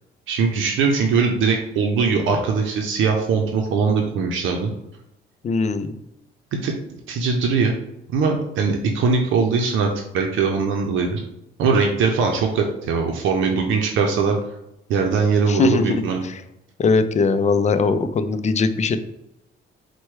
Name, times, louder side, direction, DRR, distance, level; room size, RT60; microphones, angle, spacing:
voice 1, 0.3-4.7 6.6-6.7 7.1-7.7 8.1-11.2 11.6-14.4 14.9-16.2, right 5 dB, 80° right, 2 dB, 0.6 m, -21 dB
voice 2, 5.4-6.0 15.5-16.4 16.8-19.0, left 4 dB, 35° left, 10 dB, 0.4 m, -20 dB
4.5 x 2.2 x 4.6 m, 0.86 s
cardioid pair, 90°, 20 cm